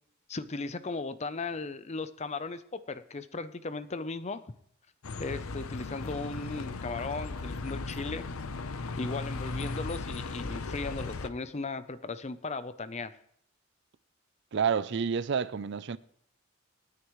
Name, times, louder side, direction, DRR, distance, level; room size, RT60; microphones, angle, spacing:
voice 1, 0.3-4.4 5.2-8.3 9.0-13.1, left 3 dB, 30° left, 0.6 m, -37 dB
Bus, 5.0-11.3, left 3 dB, 90° left, 0.8 m, -37 dB
voice 2, 14.5-16.0, right 6 dB, 55° right, 0.4 m, -29 dB
27.5 x 9.7 x 3.2 m
head